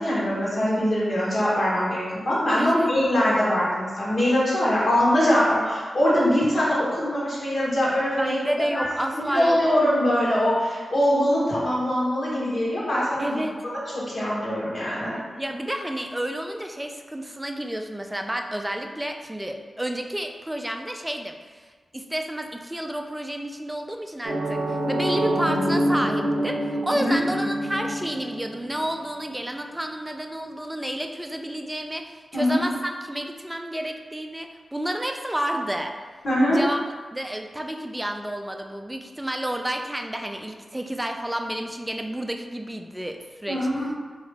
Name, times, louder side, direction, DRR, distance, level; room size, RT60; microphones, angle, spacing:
voice 1, 0.0-8.4 8.7-8.9 9.1-13.4 13.9-15.2 26.9-27.2 32.3-32.6 36.2-36.6 43.5-43.9, equal, 60° left, -7 dB, 1.4 m, -22 dB
voice 2, 2.6-2.9 8.2-9.6 13.2-13.6 15.4-21.6 21.9-35.9 36.5-36.8 37.1-43.6, right 1 dB, 10° right, 4 dB, 0.4 m, -30 dB
sound 1, 24.2-29.1, equal, 85° right, 0.5 m, -26 dB
2.9 x 2.6 x 3.3 m, 1.5 s
cardioid pair, 50°, 0 cm